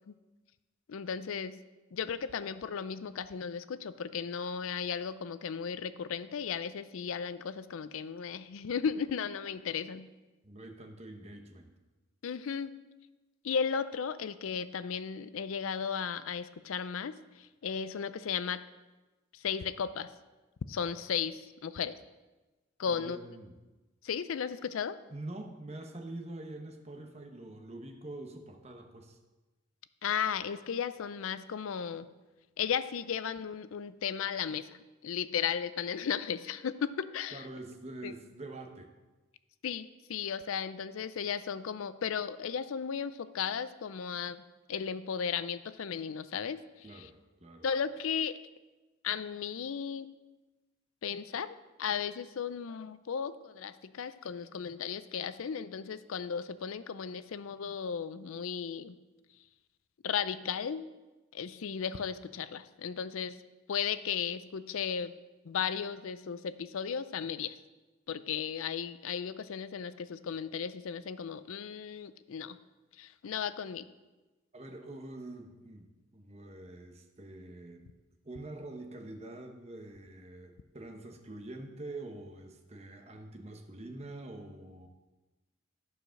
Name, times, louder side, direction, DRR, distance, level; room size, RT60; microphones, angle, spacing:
voice 1, 0.9-1.6 1.9-10.1 12.2-12.7 13.4-18.6 19.3-20.1 20.7-22.0 22.8-23.2 24.0-25.0 30.0-32.1 32.6-37.5 38.0-38.1 39.6-44.4 44.7-47.1 47.6-48.4 49.0-50.1 51.0-59.0 60.0-60.9 61.3-63.4 63.7-65.1 65.4-67.6 68.1-72.6 73.0-73.9, left 7 dB, 75° left, 14 dB, 0.4 m, -35 dB
voice 2, 10.4-11.7 22.9-23.6 25.1-29.2 37.3-38.9 46.8-47.1 47.4-47.7 74.5-77.8 78.2-84.9, right 2 dB, 30° right, 4 dB, 1.0 m, -45 dB
11.5 x 4.9 x 6.3 m, 1.1 s
head